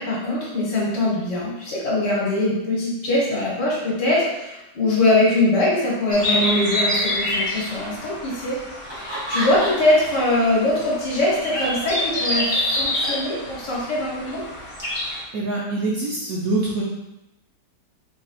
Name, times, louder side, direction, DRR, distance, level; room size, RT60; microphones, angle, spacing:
voice 1, 0.0-8.6 8.9-14.4, left 1 dB, 65° left, -5 dB, 1.8 m, -22 dB
sound 1, 6.1-15.2, left 1 dB, 40° left, 0.4 m, -27 dB
Laughter, 8.8-10.1 10.5-13.7, right 1 dB, 25° right, 0.5 m, -31 dB
voice 2, 15.3-16.8, right 2 dB, 70° right, -5 dB, 0.9 m, -24 dB
4.0 x 3.6 x 2.4 m, 0.93 s
omnidirectional pair, 2.0 m